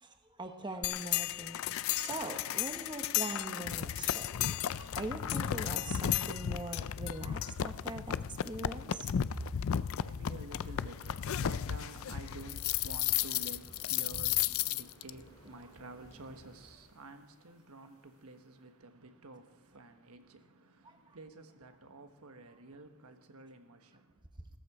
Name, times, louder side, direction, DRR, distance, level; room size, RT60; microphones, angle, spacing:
voice 1, 0.0-8.2 8.4-9.1, right 2 dB, 20° right, 1.1 m, -42 dB
sound 1, 0.8-15.1, left 10 dB, 65° left, 0.4 m, -34 dB
voice 2, 9.6-24.2, right 2 dB, 85° right, 1.3 m, -51 dB
sound 2, 11.4-16.7, equal, 20° left, 2.9 m, -55 dB
16.5 x 14.0 x 4.9 m
head